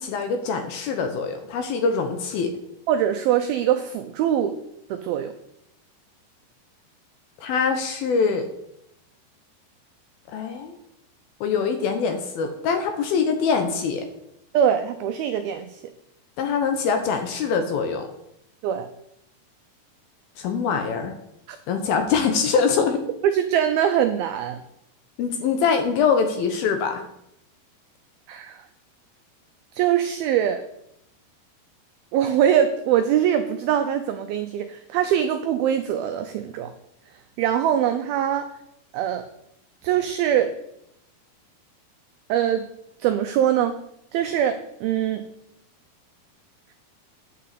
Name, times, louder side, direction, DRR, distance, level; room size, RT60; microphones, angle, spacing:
voice 1, 0.0-2.5 7.4-8.5 10.3-10.7 11.4-14.1 16.4-18.1 20.4-21.1 21.7-23.0 25.2-27.0, left 5 dB, 70° left, 6 dB, 2.5 m, -23 dB
voice 2, 2.9-4.6 4.9-5.3 14.5-15.8 18.6-18.9 21.5-21.6 23.3-24.6 28.3-28.6 29.8-30.6 32.1-36.7 37.4-38.5 38.9-39.2 39.8-40.5 42.3-42.7 43.0-43.8 44.1-45.3, right 10 dB, 90° right, 8 dB, 2.1 m, -22 dB
9.6 x 5.6 x 8.3 m, 0.78 s
omnidirectional pair, 5.1 m